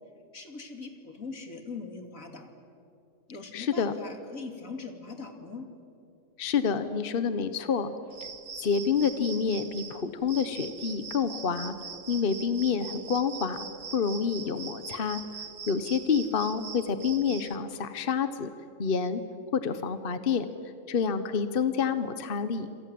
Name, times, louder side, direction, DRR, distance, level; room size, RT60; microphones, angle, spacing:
voice 1, 0.3-2.5 3.3-5.7, left 4 dB, 85° left, 4 dB, 3.1 m, -41 dB
voice 2, 3.5-3.9 6.4-7.9 8.6-11.7 12.1-13.7 13.9-15.2 15.7-18.5 18.8-19.2 19.5-20.5 20.9-22.7, left 6 dB, 45° left, 11 dB, 1.2 m, -28 dB
sound 1, 8.1-17.6, right 6 dB, 70° right, 1.7 m, -42 dB
28.0 x 27.0 x 7.7 m, 2.6 s
omnidirectional pair, 1.4 m